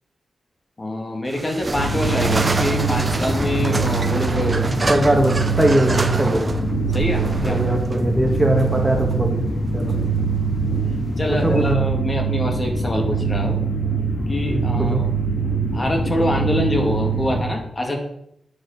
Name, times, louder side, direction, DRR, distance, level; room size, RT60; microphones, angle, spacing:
voice 1, 0.8-5.1 6.2-6.3 6.9-7.7 11.2-13.7 14.3-15.1 15.7-18.0, left 1 dB, 25° left, 2 dB, 2.7 m, -25 dB
sound 1, 1.3-11.7, right 2 dB, 25° right, 1.1 m, -28 dB
sound 2, 1.7-17.4, right 4 dB, 70° left, 3.3 m, -23 dB
voice 2, 4.7-6.5 7.4-9.4 9.7-9.9 11.4-11.8 14.5-15.0, right 1 dB, 5° right, 1 dB, 2.3 m, -21 dB
10.0 x 9.4 x 7.5 m, 0.74 s
wide cardioid pair, 135°, 0 cm